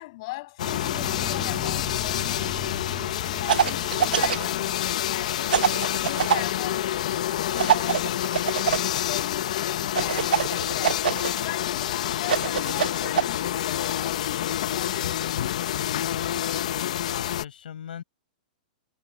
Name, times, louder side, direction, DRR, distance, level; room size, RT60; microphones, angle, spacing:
voice 1, 0.0-2.6 2.9-11.1 11.4-15.3, left 21 dB, 35° left, 6.4 m, -40 dB
sound 1, 0.6-17.4, left 11 dB, 50° left, 1.0 m, -28 dB
sound 2, 0.6-12.6, left 3 dB, 5° left, 6.1 m, -43 dB
sound 3, 3.5-4.5 5.5-6.4 7.6-8.9 9.9-11.3 12.2-13.2, right 9 dB, 90° right, 1.0 m, -24 dB
voice 2, 16.1-16.6 17.1-18.0, left 9 dB, 85° left, 6.6 m, -40 dB
hypercardioid pair, 175°, 5 cm